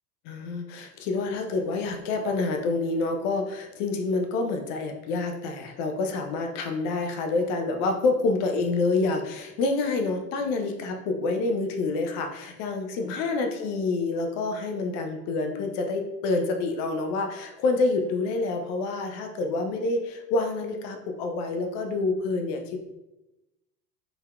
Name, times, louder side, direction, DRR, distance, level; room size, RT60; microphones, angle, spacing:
voice 1, 0.3-22.8, left 3 dB, 35° left, 4 dB, 0.4 m, -27 dB
3.8 x 2.6 x 2.2 m, 0.98 s
hypercardioid pair, 85°, 48 cm